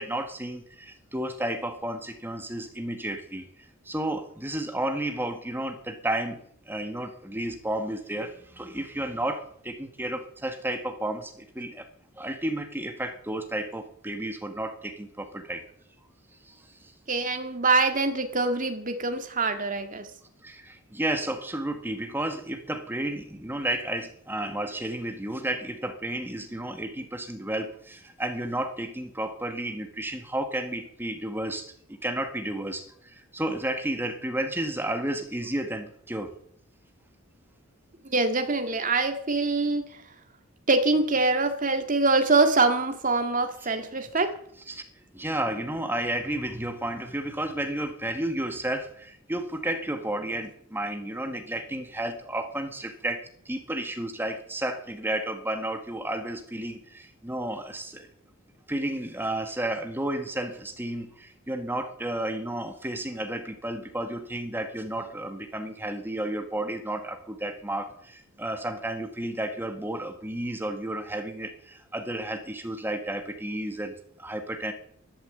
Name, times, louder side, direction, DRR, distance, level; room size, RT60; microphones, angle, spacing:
voice 1, 0.0-3.4 3.8-6.4 6.6-11.9 12.2-15.6 16.5-16.6 20.4-31.7 32.0-36.3 43.6-43.7 44.7-44.8 45.1-58.1 58.7-74.7, right 1 dB, 10° right, 7 dB, 1.4 m, -32 dB
voice 2, 17.1-20.1 38.0-39.9 40.7-44.3, right 3 dB, 40° right, 6 dB, 2.0 m, -24 dB
12.0 x 12.0 x 7.8 m, 0.64 s
head